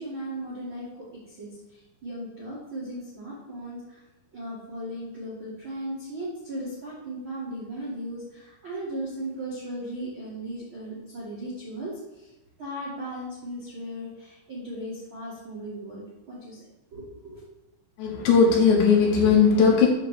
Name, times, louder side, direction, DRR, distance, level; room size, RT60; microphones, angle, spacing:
voice 1, 0.0-4.0 4.3-12.3 12.6-17.4, right 1 dB, 75° right, -7 dB, 1.1 m, -37 dB
voice 2, 18.0-19.9, left 5 dB, 70° left, -1 dB, 3.0 m, -18 dB
9.5 x 3.2 x 6.7 m, 1.0 s
omnidirectional pair, 5.7 m